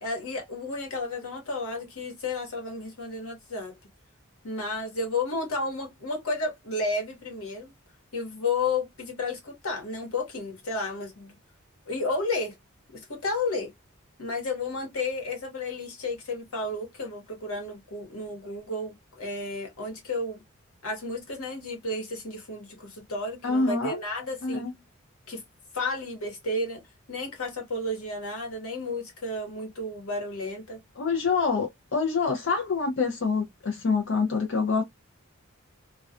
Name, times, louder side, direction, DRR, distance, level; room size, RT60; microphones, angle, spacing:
voice 1, 0.0-3.7 4.4-7.7 8.1-11.4 11.9-12.5 12.9-13.7 14.2-20.4 20.8-24.6 25.3-25.4 25.7-26.8 27.1-30.8, left 2 dB, 90° left, 1.1 m, -32 dB
voice 2, 23.4-24.0 24.4-24.7 31.0-34.8, left 4 dB, 60° left, 0.6 m, -26 dB
2.3 x 2.3 x 2.3 m
head